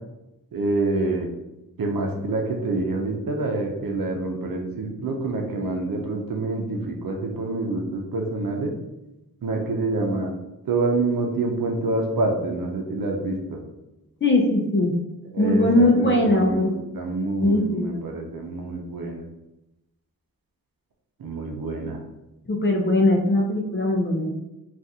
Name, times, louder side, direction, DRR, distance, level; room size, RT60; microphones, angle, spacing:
voice 1, 0.5-1.3 1.8-8.7 9.4-10.3 10.7-13.6 15.3-19.2 21.2-22.0, right 2 dB, 75° right, 2 dB, 0.7 m, -27 dB
voice 2, 14.2-14.9 15.4-16.7 17.4-18.0 22.5-24.3, left 1 dB, 35° left, 1 dB, 0.5 m, -20 dB
3.6 x 2.5 x 2.7 m, 0.94 s
wide cardioid pair, 135°, 35 cm